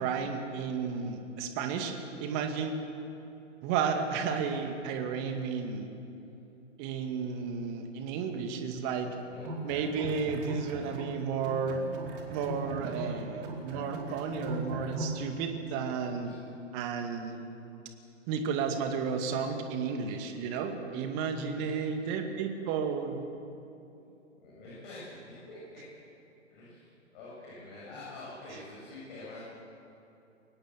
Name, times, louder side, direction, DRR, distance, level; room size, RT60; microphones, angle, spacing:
voice 1, 0.0-1.9 2.2-2.8 3.6-5.9 6.8-9.1 9.6-11.9 12.3-16.3 16.7-17.4 18.3-23.3 28.5-28.6, right 6 dB, 30° right, 5 dB, 2.3 m, -33 dB
sound 1, 9.3-11.1 11.4-15.2, right 1 dB, 45° right, 4.3 m, -38 dB
voice 2, 24.4-25.8 26.5-29.4, left 2 dB, 40° left, -7 dB, 7.6 m, -46 dB
23.0 x 19.5 x 7.7 m, 2.9 s
figure-of-eight pair, 120°, 37 cm